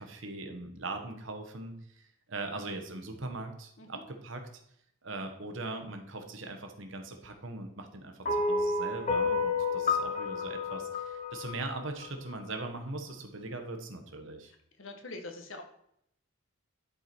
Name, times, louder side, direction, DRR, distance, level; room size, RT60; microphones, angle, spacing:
voice 1, 0.0-4.6 5.0-14.5, right 2 dB, 65° right, 5 dB, 1.4 m, -40 dB
sound 1, 8.2-12.6, left 3 dB, 35° left, 0.7 m, -31 dB
voice 2, 14.8-15.6, left 2 dB, 70° left, 5 dB, 1.4 m, -43 dB
11.5 x 4.9 x 4.5 m, 0.74 s
head